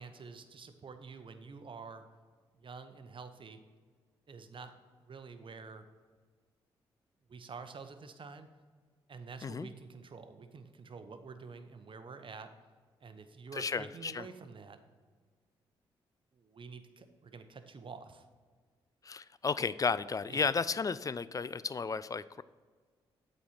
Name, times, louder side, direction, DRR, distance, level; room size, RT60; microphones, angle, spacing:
voice 1, 0.0-2.0 2.5-3.6 4.3-5.9 7.3-8.5 9.1-12.5 13.0-14.8 16.3-18.2 20.3-20.5, right 4 dB, 45° right, 9 dB, 0.8 m, -48 dB
voice 2, 13.5-14.2 19.0-22.4, left 5 dB, 30° left, 17 dB, 0.3 m, -33 dB
8.3 x 4.1 x 5.9 m, 1.6 s
hypercardioid pair, 40°, 12 cm